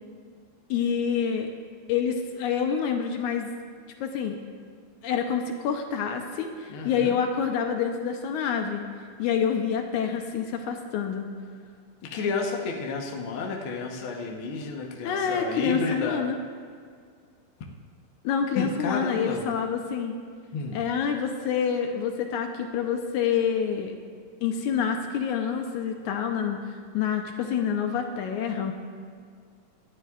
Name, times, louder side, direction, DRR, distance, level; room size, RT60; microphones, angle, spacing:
voice 1, 0.7-1.5 1.9-3.5 4.0-4.4 5.0-8.9 9.2-11.3 15.0-16.4 18.2-20.2 20.7-23.9 24.4-28.7, left 7 dB, 75° left, 4 dB, 2.1 m, -27 dB
voice 2, 6.7-7.2 12.0-16.3 18.5-19.4 20.5-20.8, left 4 dB, 55° left, 1 dB, 1.5 m, -31 dB
19.0 x 13.0 x 2.5 m, 2.1 s
omnidirectional pair, 3.7 m